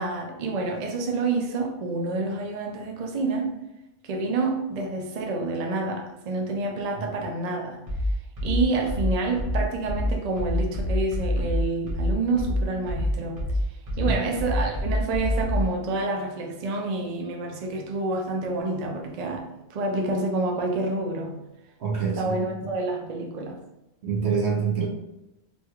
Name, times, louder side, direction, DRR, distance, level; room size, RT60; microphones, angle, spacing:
voice 1, 0.0-3.5 4.0-7.8 8.4-13.5 14.0-21.4 22.0-23.6, right 3 dB, 55° right, 2 dB, 0.5 m, -28 dB
sound 1, 7.9-15.7, left 1 dB, 35° right, 0.9 m, -26 dB
voice 2, 21.8-22.7 24.0-24.9, right 6 dB, 80° right, -3 dB, 1.1 m, -26 dB
3.1 x 2.9 x 2.3 m, 0.93 s
omnidirectional pair, 1.1 m